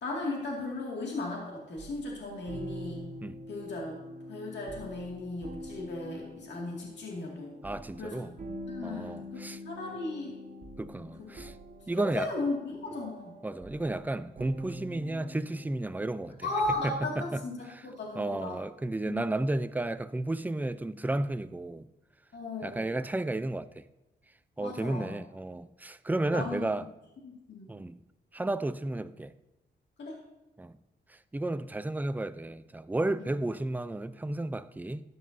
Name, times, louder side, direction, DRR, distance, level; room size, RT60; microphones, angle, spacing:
voice 1, 0.0-3.1 3.5-4.0 4.3-7.5 8.0-8.4 8.7-10.4 11.2-11.4 12.0-13.4 16.4-18.6 19.1-19.3 22.3-22.9 24.6-25.2 26.3-26.7 27.2-27.7 30.0-30.2, left 2 dB, 75° left, 2.2 m, -36 dB
sound 1, 1.8-17.0, equal, 45° right, 1.5 m, -45 dB
voice 2, 7.6-8.3 8.8-9.6 10.8-11.6 11.9-12.3 13.4-16.3 16.8-17.4 17.7-17.8 18.1-21.9 22.6-23.8 24.6-26.8 27.7-28.0 28.3-29.3 30.6-30.7 31.1-35.0, right 2 dB, 10° right, 0.5 m, -33 dB
13.0 x 9.4 x 2.7 m
cardioid pair, 75°, 18 cm